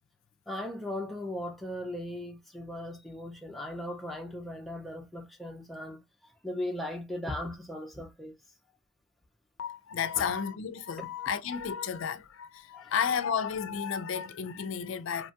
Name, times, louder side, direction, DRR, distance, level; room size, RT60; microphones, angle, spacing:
voice 1, 0.5-6.0 6.4-8.3 10.2-10.3 11.0-11.1 12.7-12.8, left 1 dB, ahead, 0.5 m, -38 dB
voice 2, 9.6-15.3, left 7 dB, 65° left, 0.4 m, -32 dB
2.9 x 2.2 x 2.7 m
head